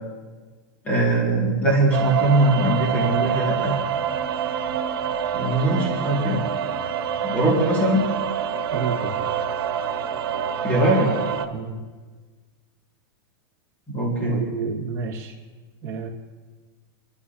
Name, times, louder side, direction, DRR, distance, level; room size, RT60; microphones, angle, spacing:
voice 1, 0.9-3.8 5.3-6.4 7.2-8.0 10.6-11.1 13.9-14.4, right 2 dB, 10° left, -3 dB, 2.1 m, -21 dB
sound 1, 1.9-11.5, right 8 dB, 70° right, 1.5 m, -26 dB
voice 2, 8.7-9.3 11.5-11.8 14.2-15.3 15.8-16.1, right 5 dB, 20° right, -4 dB, 2.1 m, -30 dB
26.5 x 12.0 x 2.8 m, 1.4 s
supercardioid pair, 180°, 13 cm